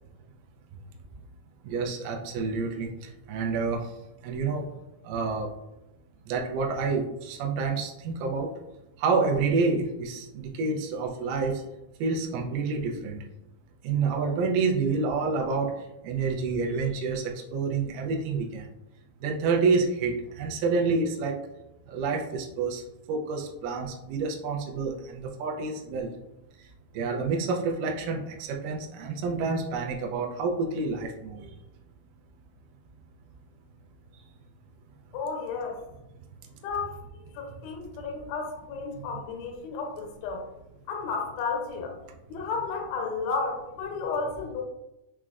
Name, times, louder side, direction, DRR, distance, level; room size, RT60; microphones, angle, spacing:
voice 1, 1.6-4.0 4.2-4.7 5.0-5.5 6.3-8.5 9.0-11.6 12.0-13.2 13.8-18.7 19.2-21.4 21.9-26.1 26.6-26.7 26.9-31.6 34.1-34.2 39.0-39.1, right 4 dB, 80° right, 0 dB, 2.1 m, -28 dB
voice 2, 35.1-35.8 36.6-37.0 37.3-40.4 40.9-41.9 42.3-44.6, left 4 dB, 80° left, 1 dB, 2.4 m, -32 dB
6.0 x 2.1 x 2.3 m, 0.91 s
omnidirectional pair, 4.1 m